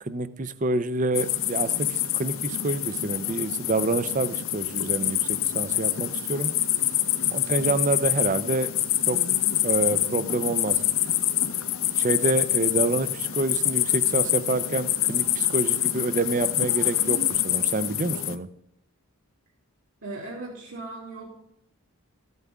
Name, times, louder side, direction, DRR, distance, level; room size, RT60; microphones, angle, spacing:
voice 1, 0.0-6.5 7.3-8.7 9.1-9.2 9.6-10.8 12.0-18.5, right 2 dB, 35° right, 14 dB, 0.6 m, -27 dB
sound 1, 1.1-18.3, left 13 dB, 65° left, 0.7 m, -26 dB
voice 2, 7.4-7.8 20.0-21.3, right 2 dB, 70° right, -5 dB, 3.1 m, -38 dB
14.0 x 9.5 x 3.6 m, 0.75 s
head